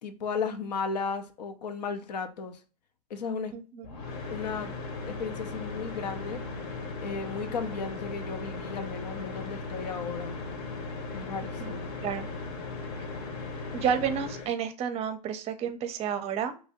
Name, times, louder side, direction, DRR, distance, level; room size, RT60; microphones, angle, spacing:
voice 1, 0.0-2.6 3.1-3.5 4.3-4.7 5.1-6.4 7.0-10.4 11.1-11.9, left 5 dB, 80° left, 0.6 m, -35 dB
voice 2, 3.5-3.9 11.6-12.3 13.0-13.1 13.7-16.6, right 8 dB, 30° right, 0.5 m, -31 dB
sound 1, 3.8-14.5, left 3 dB, 65° left, 1.0 m, -37 dB
3.1 x 2.6 x 3.6 m
hypercardioid pair, 115°, 21 cm